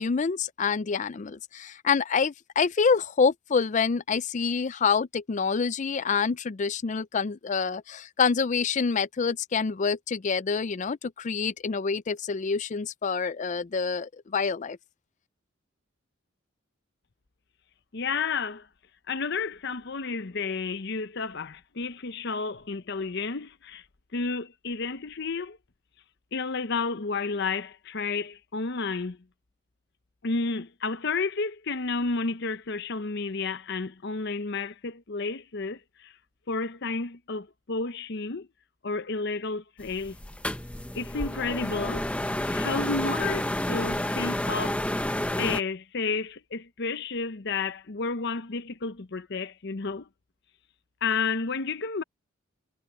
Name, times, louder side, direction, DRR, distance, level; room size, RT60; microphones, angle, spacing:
voice 1, 0.0-14.8, left 5 dB, 40° left, 0.4 m, -27 dB
voice 2, 17.9-18.7 19.1-23.8 24.1-25.6 26.3-29.2 30.2-36.1 36.5-38.5 38.8-40.2 40.9-42.1 42.5-44.8 45.3-50.1 51.0-52.0, left 4 dB, 60° left, 0.8 m, -31 dB
sound 1, 39.8-45.6, left 1 dB, 5° left, 0.8 m, -30 dB
head